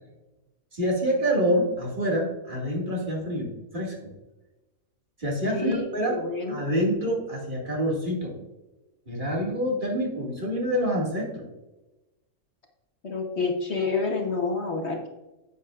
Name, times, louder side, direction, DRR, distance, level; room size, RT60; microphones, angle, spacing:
voice 1, 0.7-4.1 5.2-6.2 6.5-8.3 9.1-11.5, equal, 35° right, -2 dB, 2.3 m, -27 dB
voice 2, 5.5-6.6 13.0-15.1, left 4 dB, 50° left, 2 dB, 1.4 m, -28 dB
10.0 x 8.8 x 2.5 m, 1.0 s
omnidirectional pair, 1.5 m